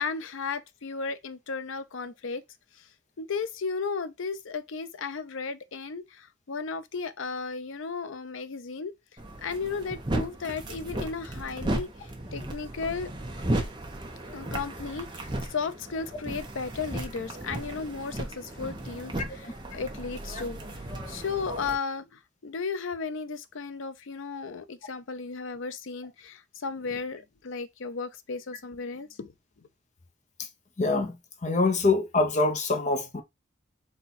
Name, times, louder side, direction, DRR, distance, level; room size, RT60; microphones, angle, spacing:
voice 1, 0.0-2.4 3.2-8.9 9.4-13.1 14.3-20.6 21.1-29.3, left 5 dB, 75° left, 0.5 m, -35 dB
sound 1, 9.2-21.8, right 1 dB, 20° right, 0.7 m, -35 dB
voice 2, 30.8-31.1 31.4-33.2, left 3 dB, 35° left, 0.7 m, -24 dB
4.3 x 2.3 x 4.1 m
head